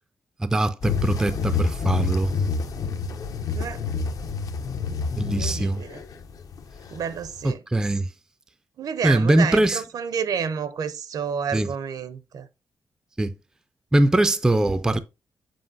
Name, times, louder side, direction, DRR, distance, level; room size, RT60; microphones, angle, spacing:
voice 1, 0.4-2.3 5.2-5.8 7.4-8.1 9.0-9.8 11.5-11.7 13.2-13.3 13.9-15.0, right 1 dB, 10° right, 0.3 m, -21 dB
sound 1, 0.8-7.5, left 4 dB, 60° left, 0.7 m, -28 dB
voice 2, 5.3-6.0 6.9-7.6 8.8-12.5, right 7 dB, 70° right, 0.6 m, -30 dB
7.7 x 5.1 x 2.6 m
wide cardioid pair, 170°, 7 cm